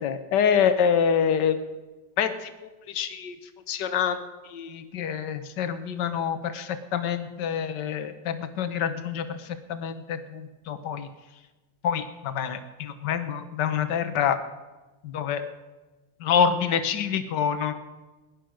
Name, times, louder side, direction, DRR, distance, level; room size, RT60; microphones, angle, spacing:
voice 1, 0.0-1.6 2.2-2.5 2.9-3.3 3.7-4.2 4.5-9.4 9.7-11.1 11.8-14.4 15.0-15.4 16.2-17.7, left 7 dB, 80° left, 9 dB, 1.6 m, -26 dB
17.5 x 11.0 x 6.3 m, 1.1 s
omnidirectional pair, 1.9 m